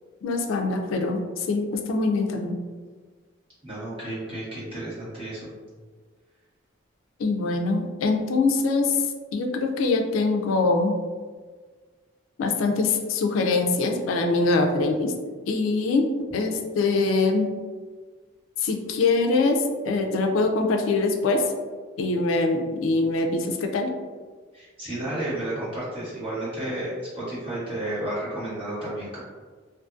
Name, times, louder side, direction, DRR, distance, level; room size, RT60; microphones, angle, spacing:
voice 1, 0.2-2.6 7.2-9.0 9.3-11.0 12.4-15.1 15.5-17.5 18.6-21.4 22.0-23.9, left 3 dB, 90° left, 3 dB, 0.4 m, -23 dB
voice 2, 3.6-5.5 24.5-29.2, right 1 dB, 30° right, -10 dB, 1.2 m, -32 dB
2.5 x 2.5 x 2.4 m, 1.5 s
head